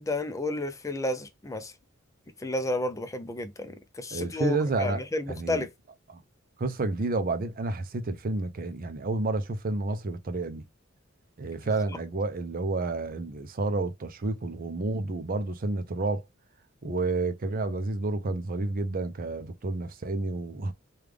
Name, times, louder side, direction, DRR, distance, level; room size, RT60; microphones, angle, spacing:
voice 1, 0.0-1.7 2.4-5.7, left 2 dB, 15° left, 0.4 m, -31 dB
voice 2, 4.1-5.6 6.1-6.2 6.6-10.6 11.4-16.2 16.8-20.7, right 2 dB, 45° right, 0.5 m, -30 dB
3.3 x 2.4 x 3.3 m
head